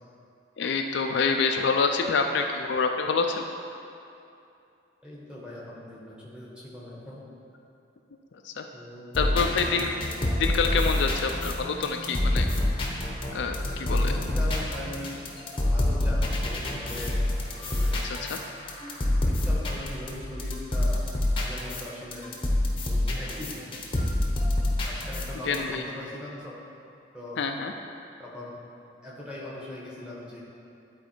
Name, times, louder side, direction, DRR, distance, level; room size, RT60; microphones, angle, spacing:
voice 1, 0.6-3.4 8.3-8.7 9.2-9.9 10.3-12.5 13.3-14.1 18.0-18.4 25.4-25.8 27.4-27.7, left 4 dB, 60° left, 4 dB, 0.4 m, -27 dB
voice 2, 5.0-7.2 8.7-9.4 14.0-15.2 15.6-17.2 17.7-18.0 19.2-21.0 21.3-22.3 22.8-23.7 24.8-26.6 27.1-27.4 28.2-28.6 29.0-30.4, left 1 dB, 5° right, -7 dB, 1.3 m, -40 dB
sound 1, 9.1-21.9 22.1-25.6, left 1 dB, 25° left, 0.8 m, -27 dB
10.5 x 4.2 x 4.5 m, 2.6 s
head